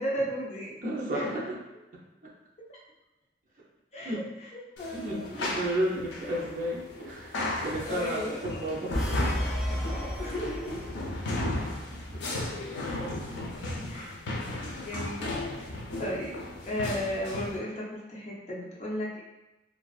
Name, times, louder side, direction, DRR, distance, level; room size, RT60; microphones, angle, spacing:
voice 1, 0.0-0.8 1.1-1.2 3.9-4.2 4.8-5.3 7.9-8.4 9.9-10.8 12.8-13.1 13.9-14.1 14.5-15.3 15.6-19.2, equal, 40° left, -5 dB, 0.5 m, -35 dB
voice 2, 0.8-1.6 2.2-2.3 4.0-4.2 4.9-8.9 12.1-12.6 13.3-13.4, right 1 dB, 50° right, -4 dB, 0.6 m, -33 dB
sound 1, 4.8-17.6, left 2 dB, 90° left, 0.4 m, -35 dB
sound 2, 8.9-11.2, equal, ahead, 0.8 m, -31 dB
2.3 x 2.3 x 2.3 m, 1.0 s
head